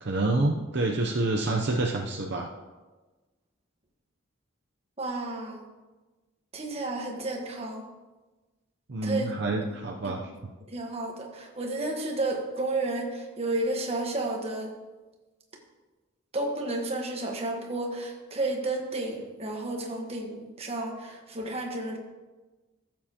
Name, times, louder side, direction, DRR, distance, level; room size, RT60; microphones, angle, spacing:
voice 1, 0.0-2.5 8.9-10.3, right 2 dB, 55° right, 1 dB, 0.7 m, -27 dB
voice 2, 5.0-5.6 6.5-7.8 9.0-9.3 9.7-9.8 10.7-14.7 16.3-22.0, right 2 dB, 30° right, 1 dB, 1.3 m, -32 dB
14.0 x 7.4 x 2.9 m, 1.2 s
head